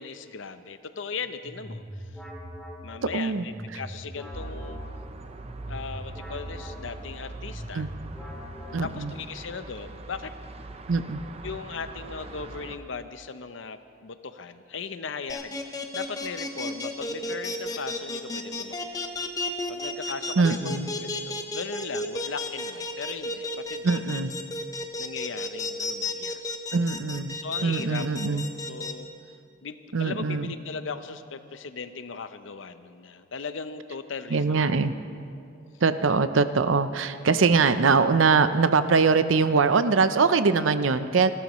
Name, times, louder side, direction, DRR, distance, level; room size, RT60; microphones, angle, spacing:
voice 1, 0.0-1.8 2.1-2.2 2.8-4.8 5.7-7.9 8.8-10.3 11.4-18.8 19.7-24.1 25.0-26.4 27.4-29.1 29.6-34.7, left 5 dB, 70° left, 11 dB, 0.7 m, -38 dB
sound 1, 1.2-9.2, equal, ahead, 2.5 m, -42 dB
voice 2, 3.1-3.4 7.7-7.9 8.7-9.1 10.9-11.2 20.4-20.9 23.8-24.3 26.7-28.4 29.9-30.5 34.3-34.9 35.8-41.3, right 4 dB, 80° right, 11 dB, 0.6 m, -22 dB
sound 2, 4.3-12.8, right 2 dB, 30° right, 0.7 m, -41 dB
sound 3, 15.3-28.9, left 2 dB, 20° left, 0.9 m, -32 dB
29.5 x 13.0 x 3.1 m, 2.4 s
head